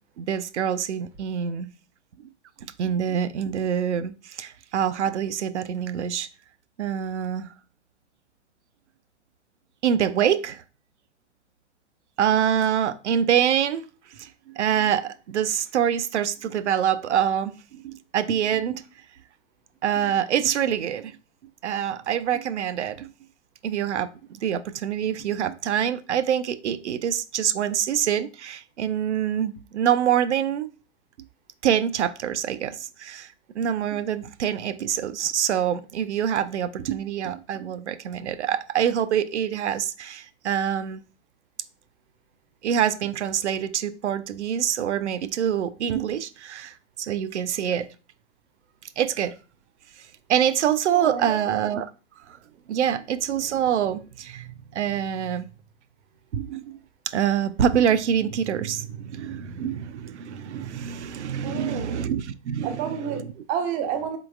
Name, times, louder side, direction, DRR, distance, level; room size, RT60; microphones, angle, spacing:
voice 1, 0.2-1.7 2.8-6.3 6.8-7.5 9.8-10.6 12.2-13.8 14.2-14.3 14.6-18.8 19.8-21.2 21.6-23.1 23.6-24.1 24.4-30.7 31.6-33.3 33.5-41.0 42.6-47.9 49.0-49.4 50.3-51.9 52.3-52.4 52.7-55.5 56.3-56.8 57.1-63.2, right 9 dB, 70° right, 0.5 m, -25 dB
voice 2, 50.9-51.6 61.4-62.0 62.6-64.2, right 7 dB, 20° right, 0.5 m, -30 dB
4.0 x 3.8 x 2.4 m
figure-of-eight pair, 110°, 36 cm